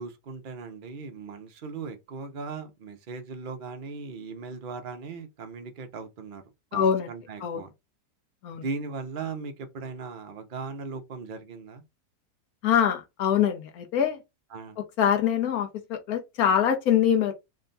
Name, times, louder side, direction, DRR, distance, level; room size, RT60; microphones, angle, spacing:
voice 1, 0.0-6.4 6.7-7.7 8.6-11.8 14.5-14.8, right 4 dB, 60° right, 0.5 m, -38 dB
voice 2, 6.7-7.1 7.4-7.6 8.4-8.6 12.6-14.2 15.0-17.3, left 9 dB, 65° left, 1.3 m, -24 dB
3.5 x 2.2 x 3.9 m
omnidirectional pair, 1.8 m